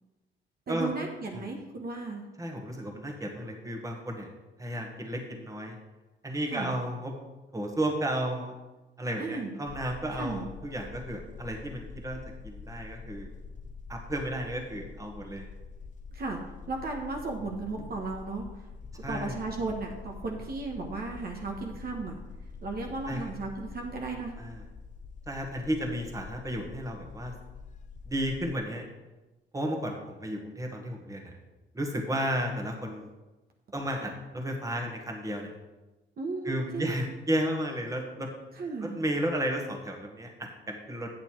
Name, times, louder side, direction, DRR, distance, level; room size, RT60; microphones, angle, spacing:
voice 1, 0.7-2.2 6.5-6.7 9.2-9.5 10.2-10.4 16.1-16.4 16.7-18.5 19.1-22.1 22.6-24.3 36.2-36.9 38.6-39.0, right 3 dB, 50° right, 1 dB, 1.3 m, -35 dB
voice 2, 2.4-4.3 4.6-5.8 6.2-7.1 7.5-8.6 9.0-12.2 12.4-13.3 13.9-15.5 19.0-19.4 23.1-23.3 24.4-24.6 25.3-27.3 28.1-28.8 29.5-31.3 31.7-33.1 33.7-35.5 36.4-38.3 38.8-41.1, equal, 15° right, 1 dB, 1.7 m, -33 dB
sound 1, 9.7-28.6, left 4 dB, 40° left, 0.7 m, -45 dB
8.7 x 6.8 x 4.6 m, 1.1 s
cardioid pair, 90°, 20 cm